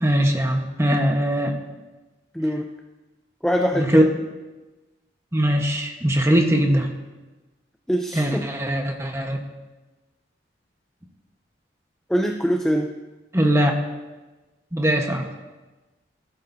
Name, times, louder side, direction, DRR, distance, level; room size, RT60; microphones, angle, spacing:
voice 1, 0.0-1.6 3.7-4.1 5.3-6.9 8.1-9.4 13.3-13.7 14.7-15.3, right 1 dB, 15° right, 3 dB, 1.1 m, -21 dB
voice 2, 2.3-2.7 3.4-4.1 7.9-8.5 12.1-13.0, equal, 5° left, 3 dB, 0.4 m, -23 dB
18.0 x 11.5 x 2.7 m, 1.2 s
head